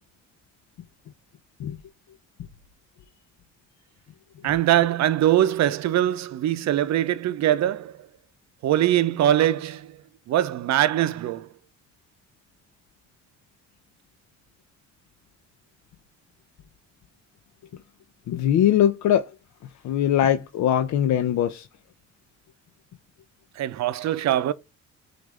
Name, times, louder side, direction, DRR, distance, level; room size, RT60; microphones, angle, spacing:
voice 1, 4.4-8.1 8.6-11.5 23.6-24.5, right 12 dB, 65° right, 0.6 m, -22 dB
voice 2, 18.3-19.3 19.8-21.7, left 10 dB, 70° left, 0.6 m, -21 dB
6.1 x 2.6 x 3.2 m
cardioid pair, 90°, 30 cm